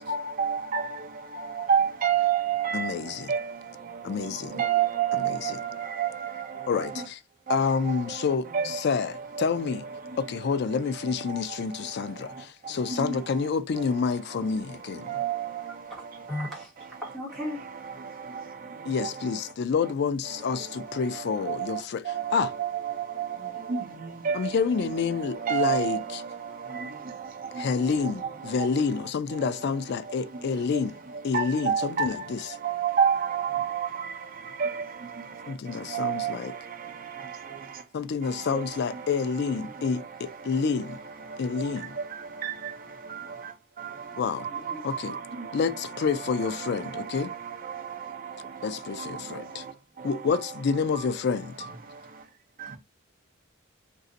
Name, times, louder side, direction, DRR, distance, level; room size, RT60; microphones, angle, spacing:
voice 1, 0.1-0.8 1.7-2.7 3.3-3.4 4.6-5.3 6.0-6.1 8.5-8.7 15.2-15.3 23.7-23.8 24.3-24.4 25.5-26.0 31.3-32.1 32.8-33.6 34.6-34.7 36.0-36.3, right 8 dB, 45° right, 0.6 m, -25 dB
voice 2, 2.7-3.3 4.0-4.6 5.1-5.6 6.7-7.2 7.5-9.9 10.2-15.2 18.8-22.5 24.3-26.2 27.5-31.0 31.2-32.6 35.5-36.6 37.9-41.0 41.4-42.0 44.2-44.5 44.8-45.2 45.5-47.3 48.6-49.6 50.0-51.7, left 5 dB, 55° left, 0.4 m, -28 dB
voice 3, 16.3-16.7 17.0-17.6 44.5-44.8 49.2-49.4, left 1 dB, ahead, 1.3 m, -36 dB
2.6 x 2.5 x 3.8 m
head